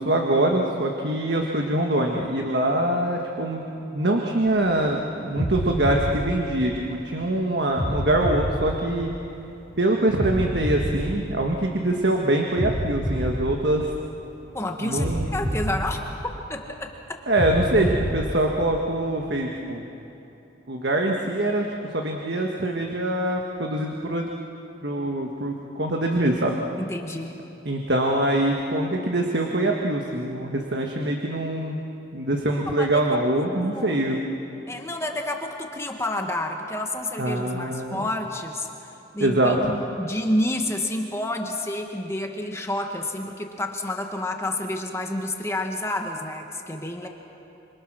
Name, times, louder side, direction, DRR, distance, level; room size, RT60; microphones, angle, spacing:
voice 1, 0.0-3.6 3.9-9.1 9.8-13.9 14.8-15.3 17.3-19.8 20.7-24.3 24.8-26.6 27.6-31.8 32.1-34.2 37.2-38.0 39.2-39.6, right 1 dB, 55° right, 1 dB, 1.6 m, -24 dB
sound 1, 4.4-4.8 5.4-7.2 7.8-9.6 10.2-12.0 12.6-14.4 15.0-16.8 17.4-19.2, equal, 40° right, 4.7 m, -29 dB
voice 2, 14.5-16.0 16.5-17.2 17.8-17.9 26.8-27.4 30.8-30.9 32.7-33.0 33.3-34.0 34.7-47.1, left 1 dB, 15° left, 3 dB, 1.4 m, -29 dB
27.0 x 26.5 x 6.2 m, 2.9 s
head